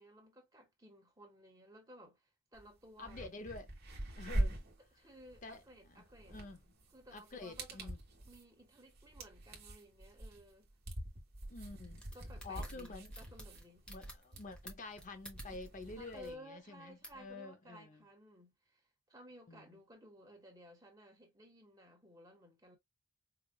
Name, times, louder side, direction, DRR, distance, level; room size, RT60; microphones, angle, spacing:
voice 1, 0.0-3.3 4.9-6.4 6.9-7.9 8.3-10.7 12.1-13.9 16.0-22.8, equal, 15° right, 1.2 m, -57 dB
sound 1, 2.5-2.6 3.0-16.3, right 1 dB, 45° right, 1.2 m, -43 dB
voice 2, 3.0-3.7 4.2-4.6 5.4-5.6 5.9-6.0 6.3-6.6 7.1-8.0 11.5-12.0 12.4-13.1 13.9-18.0 19.5-19.8, left 3 dB, 35° left, 0.6 m, -48 dB
sound 2, 11.8-15.9 16.2-16.3 17.0-17.2, right 1 dB, 5° left, 0.8 m, -51 dB
4.9 x 2.5 x 2.3 m
head